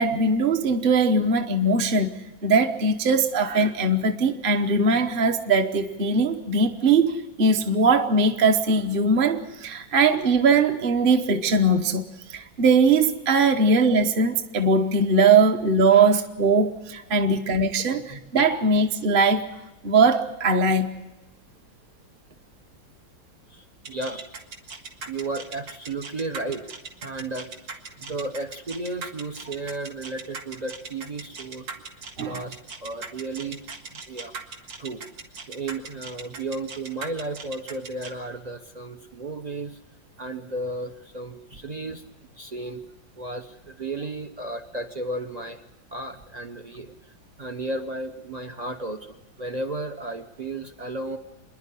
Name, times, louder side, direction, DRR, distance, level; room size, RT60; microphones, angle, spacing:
voice 1, 0.0-19.5 19.8-21.0 32.2-32.4, right 3 dB, 40° right, 4 dB, 0.8 m, -21 dB
voice 2, 23.5-24.4 25.0-31.7 32.2-33.6 33.9-34.3 34.8-35.0 35.5-39.8 40.2-42.1 42.3-42.8 43.2-45.6 45.9-46.9 47.4-51.2, right 2 dB, 55° right, 7 dB, 0.4 m, -34 dB
sound 1, 23.8-38.1, right 4 dB, 80° right, 2.6 m, -38 dB
27.5 x 11.0 x 9.8 m, 1.0 s
omnidirectional pair, 2.1 m